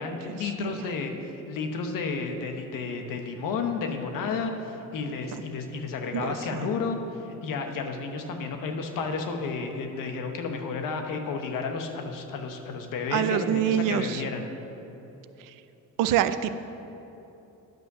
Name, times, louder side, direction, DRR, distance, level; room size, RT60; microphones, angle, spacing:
voice 1, 0.0-14.5, left 4 dB, 80° left, 5 dB, 1.1 m, -32 dB
voice 2, 6.1-6.7 13.1-14.2 16.0-16.6, right 10 dB, 85° right, 12 dB, 0.5 m, -26 dB
10.5 x 5.4 x 6.8 m, 3.0 s
cardioid pair, 150°, 32 cm